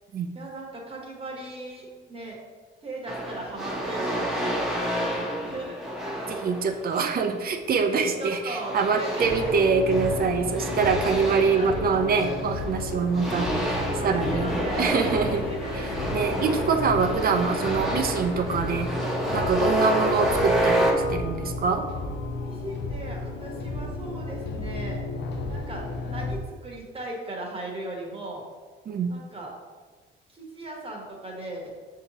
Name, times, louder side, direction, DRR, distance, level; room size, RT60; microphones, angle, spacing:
voice 1, 0.3-2.4 2.8-5.8 6.2-6.4 7.9-9.7 10.3-12.4 13.9-16.1 17.0-17.1 17.8-18.1 19.8-20.1 22.4-25.0 25.5-28.4 29.1-29.5 30.3-31.7, right 2 dB, 30° right, -2 dB, 1.1 m, -37 dB
sound 1, 3.1-7.3 8.6-12.7 13.1-20.9, equal, ahead, 0.9 m, -29 dB
voice 2, 6.3-14.5 14.8-15.4 16.1-18.9 19.3-21.9 28.9-29.1, right 5 dB, 50° right, 6 dB, 0.5 m, -25 dB
sound 2, 9.2-26.4, left 2 dB, 65° left, 0.6 m, -33 dB
6.4 x 2.8 x 2.9 m, 1.5 s
cardioid pair, 90°, 20 cm